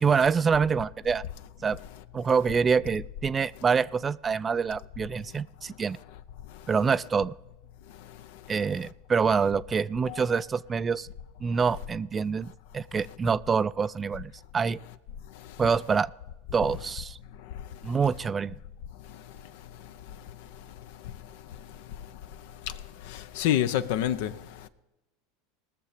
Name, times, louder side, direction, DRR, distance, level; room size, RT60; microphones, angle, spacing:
voice 1, 0.0-1.2 1.6-1.8 2.1-6.0 6.7-7.3 8.5-11.1 11.4-14.8 15.6-16.1 16.5-17.2 17.8-18.5, right 5 dB, 25° right, 0.3 m, -26 dB
voice 2, 23.1-24.3, left 11 dB, 70° left, 0.7 m, -27 dB
19.5 x 6.8 x 5.0 m
supercardioid pair, 110°, 0 cm